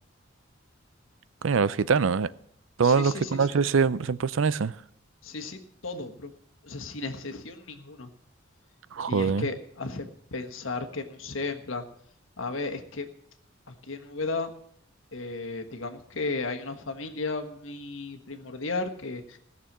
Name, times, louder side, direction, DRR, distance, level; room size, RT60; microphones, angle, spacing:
voice 1, 1.4-2.3 2.8-4.8 8.9-9.5, right 5 dB, 70° right, 0.5 m, -24 dB
voice 2, 2.8-3.6 5.2-6.3 6.6-8.1 9.1-11.8 12.4-13.1 13.7-14.5 15.1-19.4, left 3 dB, 75° left, 1.4 m, -34 dB
17.0 x 6.9 x 7.3 m
head